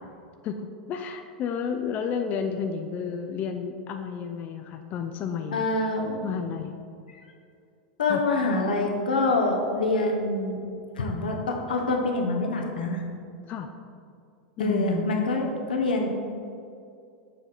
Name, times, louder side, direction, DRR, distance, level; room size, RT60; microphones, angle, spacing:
voice 1, 0.4-5.7 6.2-6.8 8.1-8.2 13.5-13.7 14.6-15.1, left 6 dB, 40° left, 5 dB, 0.4 m, -31 dB
voice 2, 5.5-6.3 8.0-10.6 11.0-13.0 14.6-16.1, left 2 dB, 85° left, 1 dB, 0.9 m, -25 dB
7.1 x 4.2 x 4.0 m, 2.4 s
hypercardioid pair, 100°, 5 cm